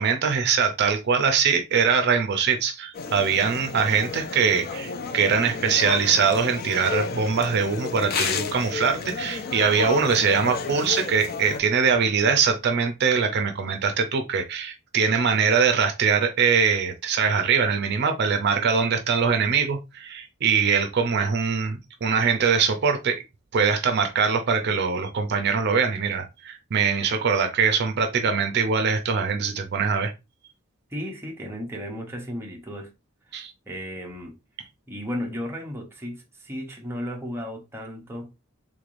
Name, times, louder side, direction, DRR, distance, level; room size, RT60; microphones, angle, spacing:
voice 1, 0.0-23.2 23.5-30.1 33.3-33.5, right 6 dB, 55° right, 0.5 m, -22 dB
sound 1, 2.9-11.6, left 5 dB, 50° left, 0.5 m, -32 dB
voice 2, 30.9-32.9 33.3-34.4 34.9-38.3, equal, 10° right, 0.7 m, -34 dB
3.6 x 3.3 x 2.5 m
head